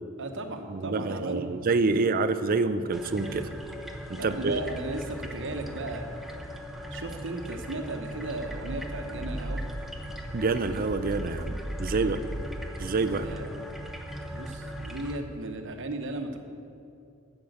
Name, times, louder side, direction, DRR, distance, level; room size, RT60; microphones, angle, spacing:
voice 1, 0.2-1.5 1.9-2.1 4.2-6.1 6.9-9.6 12.0-12.4 13.1-13.5 14.3-16.4, right 2 dB, 60° right, 5 dB, 1.0 m, -36 dB
voice 2, 0.7-3.5 4.1-4.6 10.3-12.2 12.8-13.3, right 3 dB, 40° right, 10 dB, 0.5 m, -27 dB
sound 1, 2.9-15.2, equal, ahead, 0.8 m, -37 dB
10.5 x 7.1 x 8.1 m, 2.6 s
head